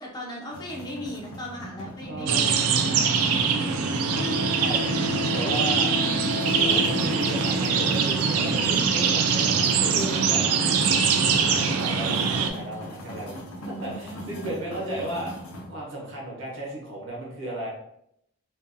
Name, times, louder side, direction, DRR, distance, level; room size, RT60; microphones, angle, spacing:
voice 1, 0.0-3.0 13.6-15.1, equal, 20° left, -2 dB, 0.4 m, -38 dB
sound 1, 0.5-15.7, left 1 dB, 80° left, 0.6 m, -41 dB
voice 2, 2.1-2.5 3.9-5.9 6.4-10.7 11.1-15.3 15.7-17.7, right 1 dB, 65° right, -3 dB, 0.9 m, -35 dB
sound 2, 2.3-12.5, right 5 dB, 85° right, 0.3 m, -23 dB
Wind instrument woodwind instrument, 4.1-8.2, left 6 dB, 35° right, 0.6 m, -33 dB
2.5 x 2.3 x 2.5 m, 0.76 s
head